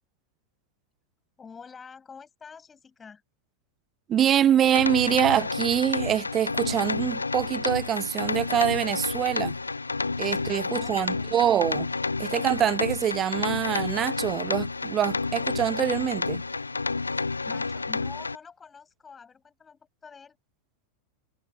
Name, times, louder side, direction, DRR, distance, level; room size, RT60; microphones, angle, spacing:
voice 1, 1.4-3.2 10.4-11.3 17.2-20.4, left 6 dB, 15° left, 7.8 m, -47 dB
voice 2, 4.1-9.6 10.2-11.9 12.2-16.4, right 10 dB, 25° right, 0.6 m, -25 dB
sound 1, 4.6-18.4, left 3 dB, 80° left, 0.5 m, -30 dB
figure-of-eight pair, 90°, 0 cm